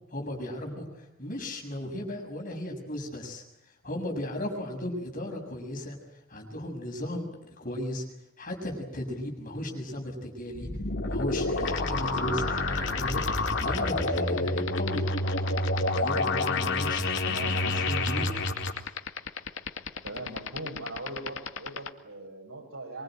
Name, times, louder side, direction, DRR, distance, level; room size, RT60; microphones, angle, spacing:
voice 1, 0.1-3.4 3.8-6.0 6.3-8.0 8.4-10.7 11.1-13.2 13.5-15.1 16.0-17.1 17.6-18.4, left 1 dB, 40° left, 2 dB, 6.6 m, -36 dB
sound 1, 10.5-18.7, left 2 dB, 55° left, 4.1 m, -28 dB
sound 2, 11.6-21.9, left 6 dB, 70° left, 1.9 m, -34 dB
voice 2, 17.3-17.6 20.0-23.0, right 2 dB, 85° right, 3 dB, 7.3 m, -40 dB
24.5 x 24.0 x 9.0 m, 0.81 s
head